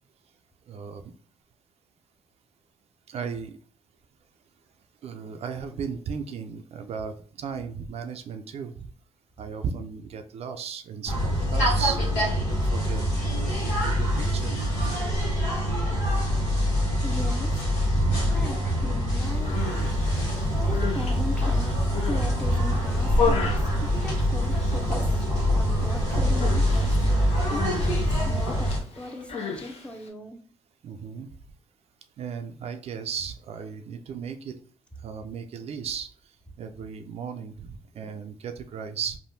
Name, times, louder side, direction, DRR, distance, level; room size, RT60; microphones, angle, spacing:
voice 1, 0.7-1.1 3.1-3.6 5.0-8.9 9.4-12.0 12.4-13.0 13.3-14.5 17.8-18.5 26.1-26.4 30.8-31.3 32.2-34.6 35.0-36.1 36.6-39.2, right 6 dB, 65° right, 7 dB, 0.4 m, -35 dB
sound 1, 11.1-28.8, equal, 90° left, 1.0 m, -25 dB
sound 2, 16.2-16.3 17.2-17.3 18.2-19.0 19.4-19.9 20.4-20.9 21.3-21.9 22.3-22.9 23.3-23.8 24.2-24.8 25.2-25.8 26.2-26.8 27.2-27.7, right 3 dB, 40° left, 1.4 m, -50 dB
voice 2, 17.0-17.5 18.3-19.6 20.3-21.8 22.1-25.1 25.5-30.4 37.9-38.1, left 1 dB, 10° left, 4 dB, 0.7 m, -38 dB
Human voice, 19.3-19.9 20.5-22.3 22.7-24.7 25.0-25.5 25.7-25.9 26.4-30.1, left 5 dB, 60° left, 0.8 m, -33 dB
3.4 x 2.2 x 2.7 m, 0.43 s
supercardioid pair, 65°, 12 cm